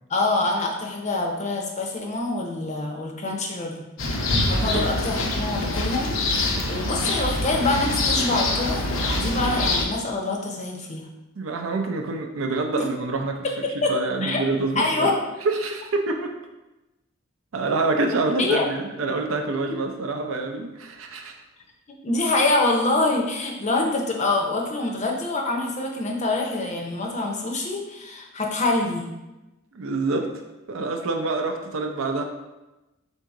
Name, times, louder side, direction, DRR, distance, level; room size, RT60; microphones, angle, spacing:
voice 1, 0.1-3.9 4.5-11.1 12.8-12.9 13.4-13.9 14.2-14.4 14.8-15.1 18.4-18.6 22.0-29.1, left 2 dB, 35° left, 0 dB, 0.6 m, -25 dB
sound 1, 4.0-9.8, left 2 dB, 75° left, 0.7 m, -25 dB
voice 2, 11.4-15.1 15.4-16.3 17.5-21.3 29.7-30.3 30.7-32.2, right 3 dB, 75° right, 4 dB, 0.5 m, -26 dB
3.7 x 2.7 x 4.7 m, 1.0 s
head